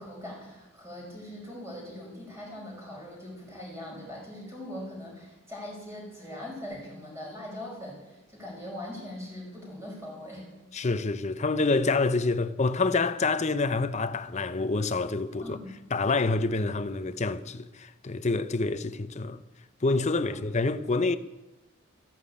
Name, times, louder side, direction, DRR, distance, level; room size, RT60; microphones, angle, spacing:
voice 1, 0.0-10.4 15.4-15.8 20.3-20.4, left 1 dB, 15° right, 5.2 m, -41 dB
voice 2, 10.7-15.6 15.9-19.4 19.8-21.2, left 3 dB, 35° left, 0.7 m, -27 dB
13.5 x 11.0 x 8.5 m
head